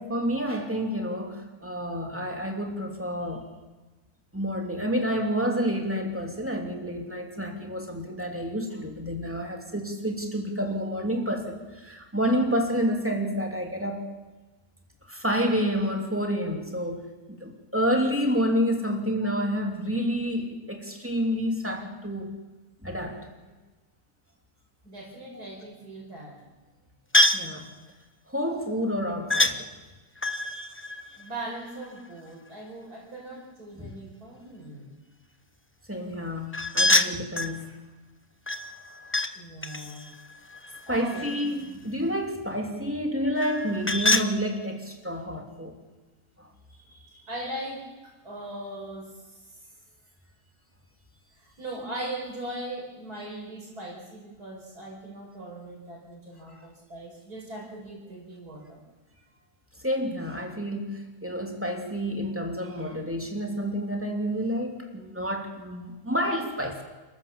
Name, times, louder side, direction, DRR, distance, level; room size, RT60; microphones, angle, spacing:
voice 1, 0.0-3.5 4.3-14.1 15.1-22.3 22.8-23.3 25.3-25.5 27.3-27.7 28.3-29.7 33.8-33.9 35.9-37.8 40.9-45.8 46.4-46.5 56.5-56.7 59.8-66.8, equal, 10° right, 2 dB, 3.1 m, -29 dB
voice 2, 24.8-26.4 31.2-34.9 39.3-40.1 40.9-41.2 46.7-49.6 51.4-58.8, right 1 dB, 80° right, -2 dB, 5.7 m, -39 dB
sound 1, 27.1-27.5 29.3-29.6 30.2-32.0 36.5-37.6 38.5-39.3 39.6-41.5 43.4-44.3, left 1 dB, 15° left, 0.4 m, -26 dB
29.5 x 14.0 x 7.2 m, 1.2 s
omnidirectional pair, 1.6 m